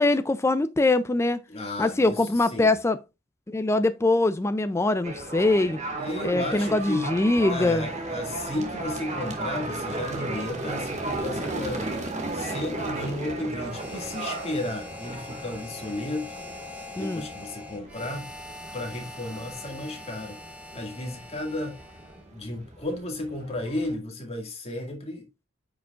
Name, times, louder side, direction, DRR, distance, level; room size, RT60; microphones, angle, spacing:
voice 1, 0.0-1.4 1.8-3.0 3.5-5.8 6.2-7.9 17.0-17.2, left 2 dB, 10° left, 0.3 m, -23 dB
voice 2, 1.5-2.2 2.5-2.7 6.0-7.1 7.5-11.9 12.3-16.4 16.9-18.3 18.7-20.4 20.7-21.8 22.3-25.5, left 1 dB, 30° left, 2.0 m, -33 dB
sound 1, 5.0-23.9, right 2 dB, 35° right, 1.8 m, -35 dB
Harmonica, 13.6-22.3, left 2 dB, 5° right, 1.2 m, -43 dB
9.5 x 6.0 x 2.4 m
head